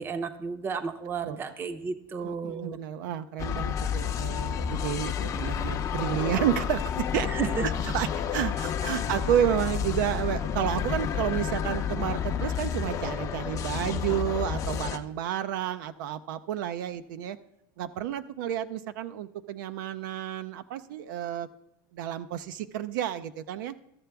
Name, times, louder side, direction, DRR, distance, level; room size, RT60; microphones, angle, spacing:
voice 1, 0.0-2.8 7.3-7.7, right 5 dB, 20° right, 11 dB, 0.6 m, -33 dB
voice 2, 2.2-7.3 7.6-17.4 17.8-21.5 21.9-23.8, right 10 dB, 70° right, 12 dB, 0.5 m, -31 dB
sound 1, 3.4-15.0, left 8 dB, 30° left, 0.5 m, -30 dB
13.5 x 6.7 x 3.4 m, 0.83 s
supercardioid pair, 135°, 11 cm